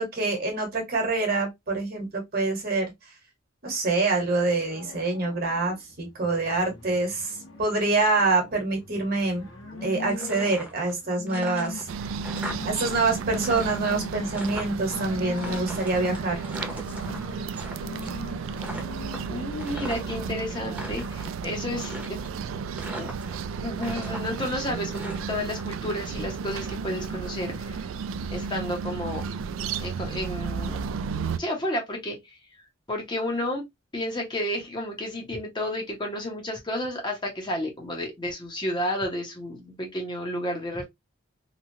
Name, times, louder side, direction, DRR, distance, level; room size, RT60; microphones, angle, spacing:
voice 1, 0.0-2.9 3.6-9.4 9.8-11.9 12.6-16.4, right 3 dB, 50° right, 1.2 m, -26 dB
sound 1, 4.1-21.1, left 3 dB, 65° left, 1.2 m, -43 dB
sound 2, 10.1-11.0 11.3-12.9 13.2-15.0 15.4-17.7 18.0-18.3 18.6-20.2 20.6-21.3 21.8-22.5 22.8-23.5 23.8-25.6, right 1 dB, 5° right, 0.9 m, -39 dB
sound 3, 11.9-31.4, right 5 dB, 75° right, 0.3 m, -33 dB
voice 2, 19.3-22.2 22.5-22.6 23.0-23.1 23.4-27.8 28.3-29.3 29.8-30.9 31.4-32.4 32.9-33.6 33.9-40.9, left 1 dB, 25° left, 0.8 m, -31 dB
3.0 x 2.3 x 2.7 m
head